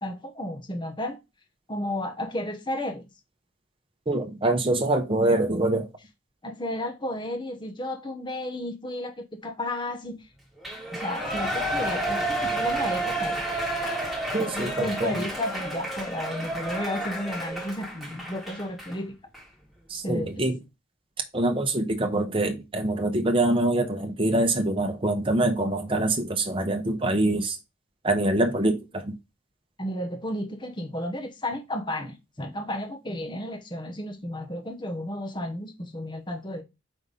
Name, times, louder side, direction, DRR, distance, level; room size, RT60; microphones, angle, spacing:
voice 1, 0.0-1.2 1.7-3.1 6.4-10.2 10.9-13.4 14.4-19.1 20.0-20.3 29.8-36.6, left 1 dB, 20° left, 0.9 m, -33 dB
voice 2, 4.1-5.9 14.3-15.2 19.9-20.6 21.3-27.6 28.0-29.1, right 2 dB, 25° right, 0.9 m, -25 dB
Shout / Cheering, 10.6-18.9 19.3-19.4, right 1 dB, ahead, 1.8 m, -30 dB
5.3 x 3.4 x 5.5 m
head